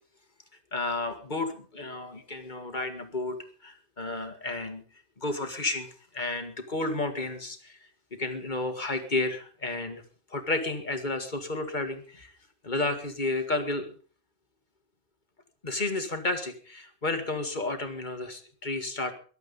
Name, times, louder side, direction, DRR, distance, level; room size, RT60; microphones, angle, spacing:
voice 1, 0.7-3.4 3.6-4.8 5.2-7.8 8.1-10.0 10.3-12.3 12.6-13.9 15.6-19.1, left 2 dB, 35° left, 7 dB, 2.0 m, -32 dB
22.5 x 8.1 x 5.4 m, 0.41 s
omnidirectional pair, 1.4 m